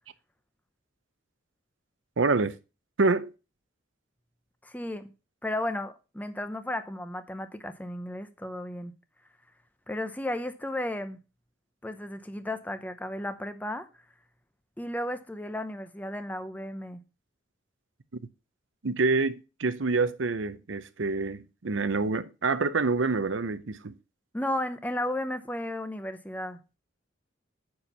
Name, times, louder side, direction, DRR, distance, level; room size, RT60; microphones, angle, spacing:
voice 1, 2.2-2.6 3.0-3.3 18.1-18.2 18.8-23.9, right 3 dB, 75° right, 0.7 m, -27 dB
voice 2, 4.6-5.1 5.4-8.9 9.9-11.2 11.8-13.9 14.8-17.0 24.3-26.6, left 1 dB, 10° left, 0.7 m, -34 dB
9.5 x 4.5 x 5.4 m
head